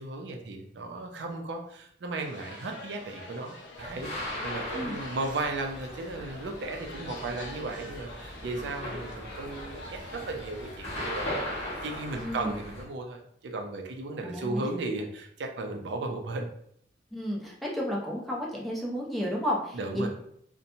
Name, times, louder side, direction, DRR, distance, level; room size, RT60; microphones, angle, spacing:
voice 1, 0.0-11.4 11.8-16.5 19.7-20.1, right 2 dB, 70° right, 2 dB, 0.4 m, -35 dB
sound 1, 2.2-12.3, left 2 dB, 70° left, 0.5 m, -46 dB
sound 2, 3.8-12.8, left 1 dB, 35° left, 1.0 m, -38 dB
voice 2, 12.2-12.5 14.2-14.7 17.1-20.1, equal, ahead, -4 dB, 0.5 m, -32 dB
2.8 x 2.1 x 2.6 m, 0.68 s
head